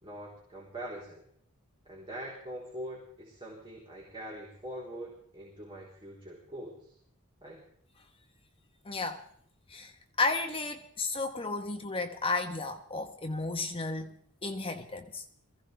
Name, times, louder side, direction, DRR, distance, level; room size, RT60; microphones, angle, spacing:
voice 1, 0.0-1.2 1.9-6.9 7.4-7.6, right 1 dB, 25° right, 3.8 m, -43 dB
voice 2, 8.8-9.2 9.7-9.9 10.2-14.2 14.4-15.2, left 3 dB, 25° left, 1.1 m, -33 dB
22.5 x 16.0 x 3.4 m
head